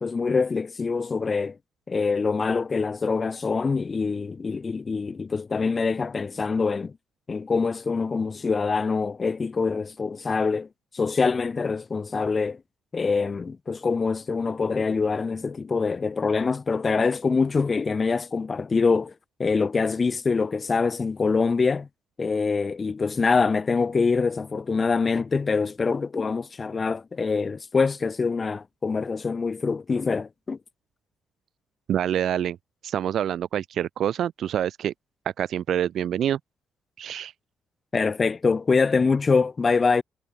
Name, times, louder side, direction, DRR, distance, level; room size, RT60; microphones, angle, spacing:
voice 1, 0.0-1.6 1.9-6.9 7.3-10.7 10.9-12.6 12.9-19.1 19.4-21.9 22.2-30.6 37.9-40.0, left 4 dB, 30° left, 1.7 m, -24 dB
voice 2, 31.9-32.6 32.8-34.9 35.4-36.4 37.0-37.3, right 10 dB, 65° right, 3.3 m, -26 dB
cardioid pair, 100°, 0 cm